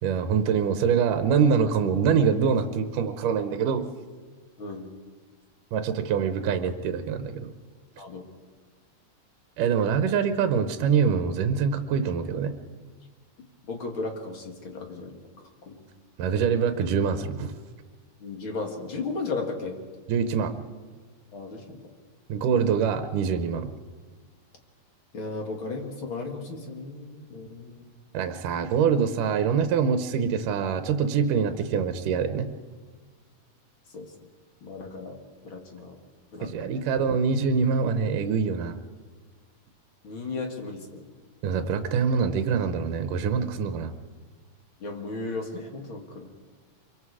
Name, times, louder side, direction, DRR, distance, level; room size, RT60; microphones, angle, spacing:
voice 1, 0.0-3.9 5.7-7.5 9.6-12.5 16.2-17.5 20.1-20.6 22.3-23.7 28.1-32.5 36.4-38.8 41.4-43.9, right 6 dB, 80° right, 8 dB, 2.5 m, -24 dB
voice 2, 4.6-4.9 8.0-8.2 13.7-15.2 15.7-15.9 18.2-19.8 21.3-21.9 25.1-27.8 33.9-34.1 34.6-35.2 35.4-36.0 36.3-36.8 40.0-41.0 44.8-46.3, left 3 dB, 40° left, 3 dB, 2.6 m, -35 dB
25.5 x 23.5 x 4.9 m, 1.5 s
omnidirectional pair, 3.7 m